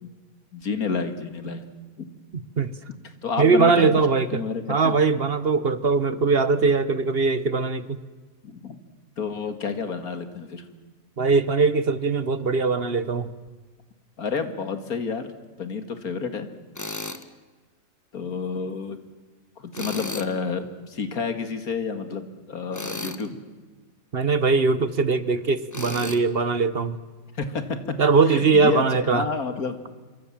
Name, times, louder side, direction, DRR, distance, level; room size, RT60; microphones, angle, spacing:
voice 1, 0.5-1.7 2.0-2.1 3.0-4.0 4.3-5.0 8.4-8.8 9.2-10.6 14.2-15.3 15.6-16.5 18.1-19.0 19.6-23.4 27.3-28.0 28.3-29.7, left 5 dB, 85° left, 9 dB, 2.5 m, -30 dB
voice 2, 3.4-4.4 4.7-8.0 11.2-13.3 19.8-19.9 24.1-27.0 28.0-29.2, right 4 dB, 45° right, 15 dB, 1.2 m, -21 dB
Tools, 16.7-17.2 19.7-20.3 22.7-23.3 25.7-26.2, left 2 dB, 15° left, 1.3 m, -33 dB
26.5 x 23.5 x 7.4 m, 1.4 s
omnidirectional pair, 1.5 m